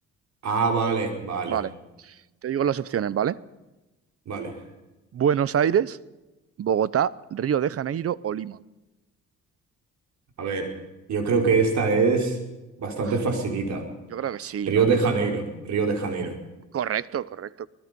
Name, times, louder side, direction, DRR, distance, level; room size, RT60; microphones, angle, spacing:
voice 1, 0.4-1.6 4.3-4.6 10.4-10.7 11.1-12.4 12.8-13.8 14.7-16.4, right 4 dB, 65° right, 5.2 m, -24 dB
voice 2, 2.4-3.4 5.1-6.0 6.6-8.6 14.1-14.9 16.7-17.7, right 9 dB, 50° right, 0.8 m, -25 dB
24.5 x 20.0 x 5.4 m
cardioid pair, 90°, 30 cm